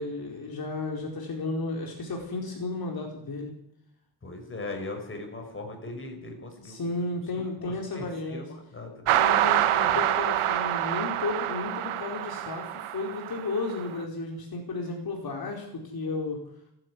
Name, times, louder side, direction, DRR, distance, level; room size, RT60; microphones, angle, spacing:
voice 1, 0.0-3.5 6.6-8.4 9.1-16.4, left 3 dB, 45° left, 1 dB, 4.9 m, -33 dB
voice 2, 4.2-7.2 7.6-9.1 9.8-10.0, left 2 dB, 25° left, 4 dB, 5.8 m, -40 dB
sound 1, 9.1-13.9, right 12 dB, 85° right, 1.4 m, -26 dB
30.0 x 12.0 x 10.0 m, 0.77 s
wide cardioid pair, 145°, 49 cm